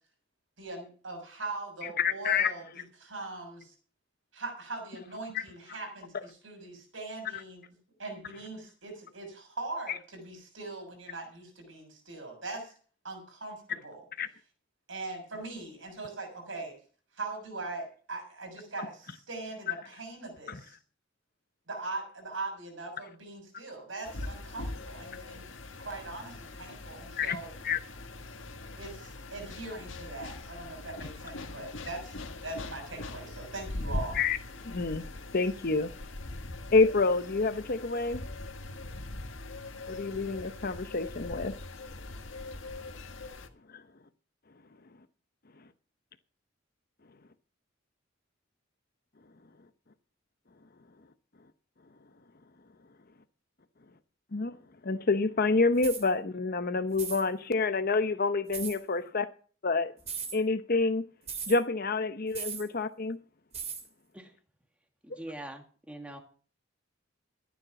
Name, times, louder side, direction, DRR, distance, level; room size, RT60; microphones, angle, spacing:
voice 1, 0.6-3.7 4.3-7.6 8.0-12.7 13.0-14.0 14.9-16.7 17.2-20.8 21.7-25.5 25.8-27.5 28.8-32.1 32.4-34.2, right 3 dB, 75° right, 6.6 m, -41 dB
voice 2, 2.0-2.5 5.3-5.4 14.2-14.3 20.5-20.6 27.2-27.4 27.6-27.8 34.1-34.4 34.6-35.0 35.3-35.9 36.7-38.2 39.9-41.5 43.7-43.8 54.3-54.6 54.8-59.3 59.6-59.9 60.3-61.0 61.5-63.2 65.1-65.2, left 3 dB, 50° left, 0.9 m, -28 dB
sound 1, 24.0-43.5, left 2 dB, 75° left, 1.6 m, -41 dB
sound 2, 55.8-56.1 56.9-57.2 58.5-58.8 60.0-60.4 61.3-61.6 62.3-62.7 63.5-63.9, right 6 dB, 35° right, 3.2 m, -37 dB
voice 3, 65.0-66.2, right 1 dB, 5° right, 2.2 m, -43 dB
14.5 x 9.7 x 5.9 m
head